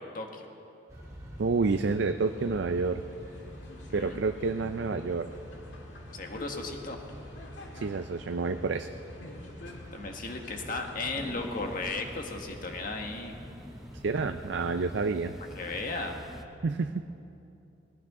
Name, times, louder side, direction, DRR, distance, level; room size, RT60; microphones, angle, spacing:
voice 1, 0.1-0.5 3.9-4.2 6.1-7.0 9.9-13.3 15.5-16.2, left 3 dB, 45° left, 3 dB, 1.5 m, -35 dB
sound 1, 0.9-16.4, equal, 15° right, 2.5 m, -46 dB
voice 2, 1.4-3.0 3.9-5.3 7.7-8.9 14.0-15.3 16.6-17.0, right 4 dB, 65° right, 8 dB, 0.5 m, -29 dB
sound 2, 2.2-12.1, left 1 dB, 75° left, 1.7 m, -50 dB
sound 3, 11.2-16.4, equal, ahead, 0.6 m, -47 dB
20.0 x 18.0 x 3.7 m, 2.8 s
head